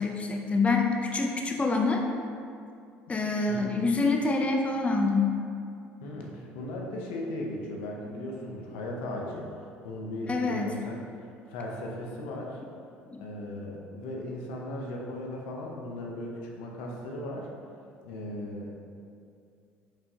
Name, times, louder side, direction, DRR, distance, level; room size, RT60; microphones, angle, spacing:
voice 1, 0.0-2.0 3.1-5.4 10.3-10.8 13.1-13.2, left 3 dB, 25° left, 2 dB, 0.5 m, -26 dB
voice 2, 3.5-3.9 6.0-9.5 9.8-11.0 11.5-12.6 13.2-17.5 18.0-18.7, left 1 dB, 85° left, -1 dB, 0.7 m, -37 dB
5.0 x 3.4 x 2.8 m, 2.4 s
supercardioid pair, 75°, 5 cm